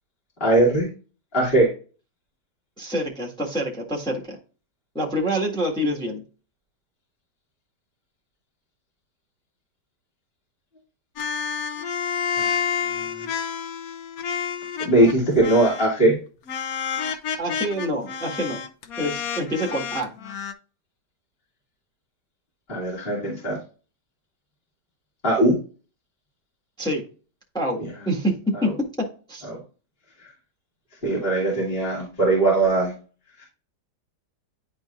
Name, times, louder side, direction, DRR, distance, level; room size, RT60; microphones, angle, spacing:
voice 1, 0.4-0.9 1.3-1.7 12.4-12.6 13.2-13.3 14.8-16.2 22.7-23.6 25.2-25.6 27.8-27.9 29.5-29.6 31.0-32.9, right 2 dB, 30° left, -4 dB, 2.7 m, -20 dB
voice 2, 2.8-4.4 4.9-6.2 17.4-18.6 19.0-20.1 26.8-27.0 27.5-29.5, equal, 5° left, -2 dB, 1.5 m, -26 dB
sound 1, 11.2-15.1 15.4-16.0 16.5-20.5, left 7 dB, 65° left, 1.1 m, -29 dB
10.5 x 3.9 x 2.5 m, 0.35 s
omnidirectional pair, 1.9 m